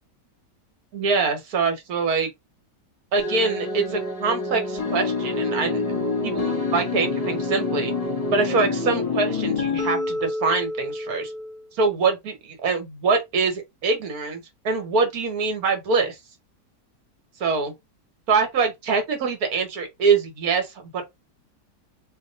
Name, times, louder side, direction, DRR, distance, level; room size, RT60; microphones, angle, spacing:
voice 1, 0.9-2.3 3.1-7.9 8.3-11.3 11.8-16.2 17.4-17.7 18.3-21.1, right 4 dB, 65° right, 1.4 m, -24 dB
sound 1, 3.2-11.6, left 3 dB, 25° left, 0.9 m, -27 dB
2.9 x 2.4 x 3.8 m
omnidirectional pair, 1.8 m